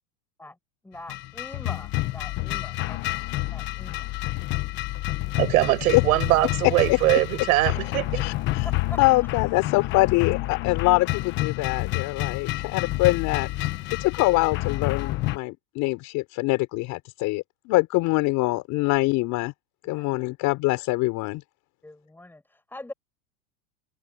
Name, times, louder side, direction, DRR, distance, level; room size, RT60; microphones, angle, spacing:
voice 1, 0.8-4.2 8.6-9.0 19.8-20.1 21.8-22.9, left 2 dB, 5° left, 7.6 m, -43 dB
sound 1, 1.1-15.4, left 18 dB, 25° left, 0.7 m, -29 dB
voice 2, 5.4-8.2, right 18 dB, 60° right, 7.0 m, -22 dB
voice 3, 8.1-8.7 9.0-19.5 19.9-21.4, left 22 dB, 40° left, 5.4 m, -24 dB
supercardioid pair, 155°, 48 cm